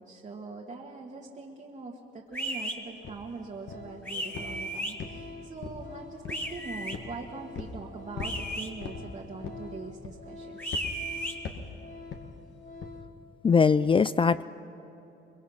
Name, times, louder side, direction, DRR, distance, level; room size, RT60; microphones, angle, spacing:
voice 1, 0.0-10.6, right 3 dB, 40° right, -1 dB, 1.7 m, -42 dB
sound 1, 2.3-2.8 4.1-4.9 6.3-7.0 8.2-8.7 10.6-11.3, right 1 dB, 10° left, 2.3 m, -34 dB
sound 2, 3.0-3.2 3.7-4.0 4.3-4.6 5.0-5.9 6.2-6.5 6.9-7.2 7.5-7.8 8.2-8.4 8.8-9.0 9.4-9.7 10.0-10.3 10.7-10.9 11.4-11.7 12.1-12.3 12.8-13.0, left 5 dB, 65° left, 1.9 m, -39 dB
Organ, 3.2-3.4 3.6-13.2 13.5-13.7, left 3 dB, 45° left, 1.9 m, -48 dB
voice 2, 13.4-14.4, left 5 dB, 25° left, 15 dB, 0.4 m, -21 dB
23.5 x 22.0 x 5.8 m, 2.9 s
cardioid pair, 90°, 20 cm